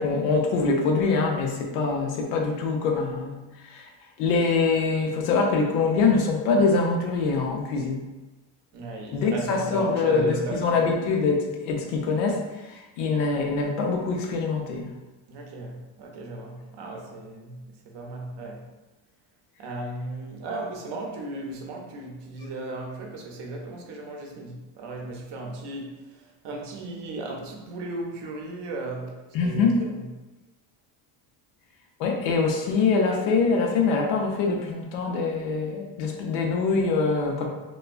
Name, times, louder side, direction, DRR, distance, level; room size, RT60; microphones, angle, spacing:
voice 1, 0.0-3.9 4.2-8.0 9.1-14.9 29.3-29.8 32.0-37.5, left 4 dB, 90° left, 1 dB, 0.6 m, -24 dB
voice 2, 8.7-10.7 15.3-17.6 17.8-18.6 19.6-25.9 26.4-29.2 29.4-30.0, right 2 dB, 55° right, 0 dB, 0.7 m, -36 dB
2.3 x 2.2 x 2.4 m, 1.1 s
supercardioid pair, 75°, 50 cm